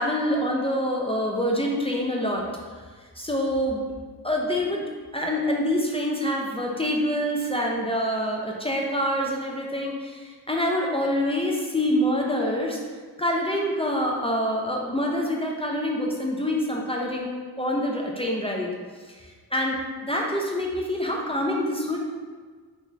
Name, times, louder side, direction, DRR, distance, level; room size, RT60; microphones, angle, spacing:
voice 1, 0.0-2.5 3.2-3.8 4.2-4.8 5.1-12.8 13.2-17.3 17.6-18.8 19.2-22.0, equal, 15° left, -2 dB, 0.3 m, -26 dB
3.8 x 2.3 x 3.1 m, 1.5 s
wide cardioid pair, 90°, 39 cm